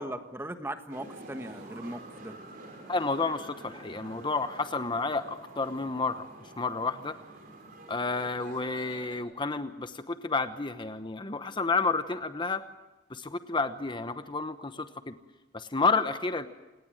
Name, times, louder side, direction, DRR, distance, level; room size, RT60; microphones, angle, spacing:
voice 1, 0.0-2.4, right 1 dB, 15° right, 8 dB, 1.5 m, -38 dB
sound 1, 0.9-9.2, right 2 dB, 50° right, 5.7 m, -48 dB
voice 2, 2.9-6.3 6.6-7.2 7.9-12.6 13.1-15.1 15.5-16.5, left 4 dB, 25° left, 10 dB, 1.0 m, -30 dB
28.0 x 18.5 x 7.8 m, 1.1 s
head